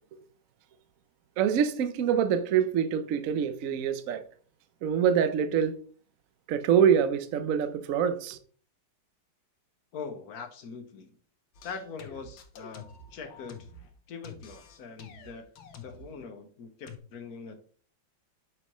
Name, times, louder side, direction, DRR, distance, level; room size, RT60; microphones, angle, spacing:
voice 1, 1.4-4.2 4.8-5.8 6.5-8.4, right 8 dB, 65° right, 0.8 m, -25 dB
voice 2, 9.9-11.2 11.6-13.7 14.1-15.4 15.8-17.5, left 5 dB, 55° left, 1.3 m, -42 dB
sound 1, 11.5-13.9 14.2-16.1 16.9-17.0, left 5 dB, 75° left, 1.6 m, -48 dB
6.2 x 5.6 x 3.0 m
omnidirectional pair, 2.1 m